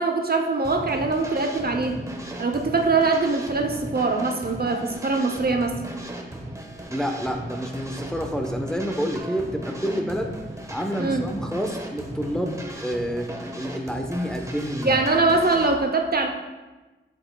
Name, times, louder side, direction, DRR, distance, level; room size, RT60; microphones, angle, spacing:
voice 1, 0.0-2.0 2.4-5.8 11.0-11.2 14.8-16.3, right 3 dB, 50° right, 3 dB, 0.8 m, -22 dB
sound 1, 0.6-15.8, right 1 dB, 15° right, 1.3 m, -37 dB
voice 2, 6.9-10.3 10.7-13.3 13.5-14.9, equal, 5° left, 3 dB, 1.0 m, -28 dB
10.5 x 7.9 x 2.3 m, 1.2 s
cardioid pair, 50°, 21 cm